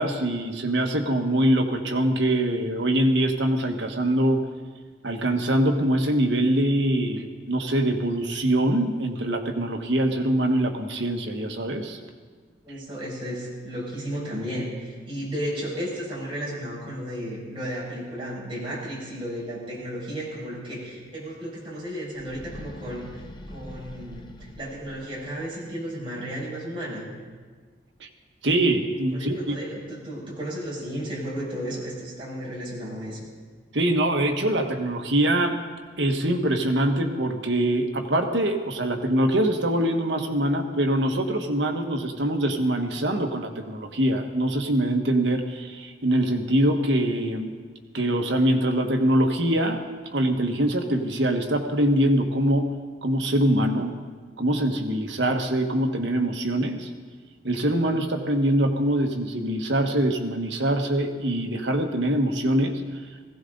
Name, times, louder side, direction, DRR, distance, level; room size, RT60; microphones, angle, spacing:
voice 1, 0.0-4.4 5.0-12.0 28.0-28.1 28.4-29.6 33.7-35.6 36.0-47.5 47.9-49.8 50.1-52.7 53.0-53.9 54.4-56.9 57.4-62.8, right 1 dB, 80° right, 4 dB, 1.5 m, -23 dB
voice 2, 12.6-23.2 23.5-27.1 29.1-33.3, equal, 30° right, -6 dB, 5.8 m, -33 dB
sound 1, 22.1-25.4, left 1 dB, 25° left, 0.8 m, -43 dB
20.0 x 16.5 x 4.0 m, 1.5 s
head